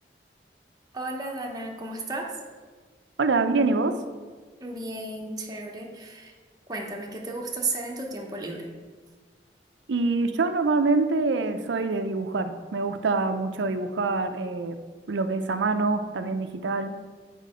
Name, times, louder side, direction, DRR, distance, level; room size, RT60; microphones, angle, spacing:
voice 1, 0.9-2.3 4.6-6.3 6.7-8.7, right 2 dB, 20° right, 0 dB, 0.8 m, -33 dB
voice 2, 3.2-4.0 9.9-14.8 15.1-16.9, right 3 dB, 90° right, 8 dB, 0.5 m, -25 dB
6.6 x 4.5 x 5.0 m, 1.4 s
head